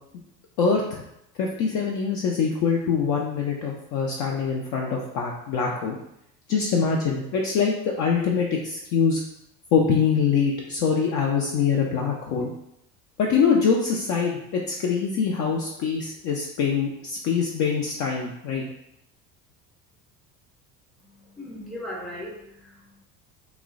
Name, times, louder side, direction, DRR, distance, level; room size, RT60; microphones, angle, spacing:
voice 1, 0.6-1.0 1.4-6.0 6.5-9.2 9.7-12.5 13.2-14.4 14.8-18.6, left 6 dB, 40° left, -1 dB, 0.4 m, -24 dB
voice 2, 21.0-23.0, left 1 dB, ahead, -3 dB, 0.6 m, -38 dB
2.9 x 2.0 x 2.4 m, 0.78 s
hypercardioid pair, 70°, 49 cm